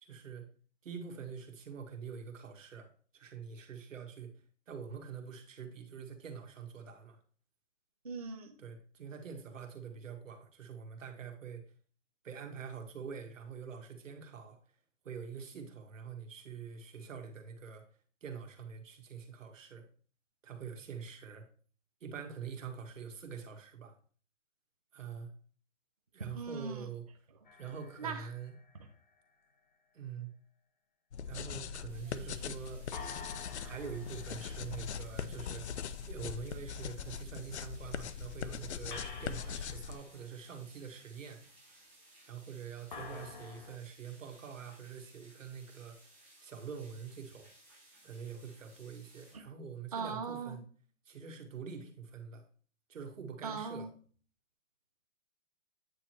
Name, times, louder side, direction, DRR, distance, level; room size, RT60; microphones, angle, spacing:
voice 1, 0.0-0.5 0.8-4.3 4.7-7.2 8.6-11.6 12.2-14.6 15.0-17.9 18.2-19.9 20.4-21.5 22.0-24.0 24.9-25.3 26.1-27.1 27.5-28.5 29.9-30.3 31.2-32.9 33.6-41.4 42.3-46.1 46.4-47.5 48.0-50.6 51.1-52.4 52.9-53.9, right 6 dB, 85° right, 3 dB, 1.7 m, -45 dB
voice 2, 8.0-8.5 26.3-26.9 28.0-28.3 49.3-49.4 49.9-50.6 53.4-53.9, right 5 dB, 30° right, 3 dB, 0.4 m, -39 dB
sound 1, 27.4-29.2 32.9-36.2 38.9-41.1 42.9-43.8, left 4 dB, 40° left, 0.8 m, -50 dB
sound 2, 31.1-40.0, left 7 dB, 65° left, 0.5 m, -41 dB
sound 3, 31.9-49.3, right 1 dB, 5° left, 0.9 m, -61 dB
8.7 x 3.1 x 4.5 m, 0.43 s
hypercardioid pair, 175°, 37 cm